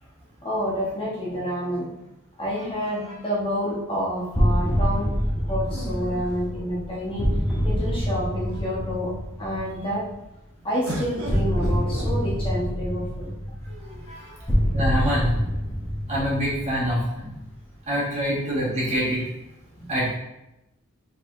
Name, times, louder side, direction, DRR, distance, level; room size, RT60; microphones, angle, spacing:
voice 1, 0.4-1.9 2.4-5.1 5.5-7.3 7.6-9.1 9.4-10.0 10.6-13.3 13.8-14.4 18.2-18.3 19.7-19.9, equal, 25° left, -7 dB, 1.3 m, -29 dB
sound 1, 2.5-3.6 5.6-7.2 7.9-8.0 8.3-8.9 10.9-12.7 13.7-14.4, right 1 dB, 75° right, 1.1 m, -39 dB
sound 2, 4.3-10.1 11.3-17.5, equal, 5° left, 1.1 m, -26 dB
voice 2, 14.4-15.3 16.1-17.4 17.9-19.2 19.9-20.1, equal, 30° right, -7 dB, 1.7 m, -25 dB
5.0 x 4.0 x 2.6 m, 0.91 s
head